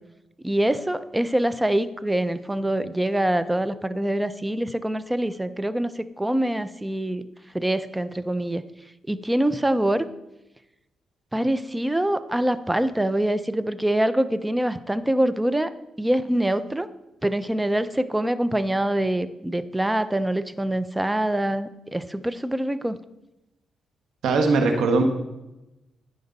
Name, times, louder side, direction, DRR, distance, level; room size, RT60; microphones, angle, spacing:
voice 1, 0.4-7.3 7.5-8.6 9.1-10.1 11.3-15.7 16.0-16.9 17.2-23.0, right 1 dB, 10° right, 13 dB, 0.5 m, -24 dB
voice 2, 24.2-25.0, right 3 dB, 75° right, 4 dB, 1.5 m, -20 dB
15.0 x 5.2 x 4.1 m, 0.96 s
cardioid pair, 80°, 0 cm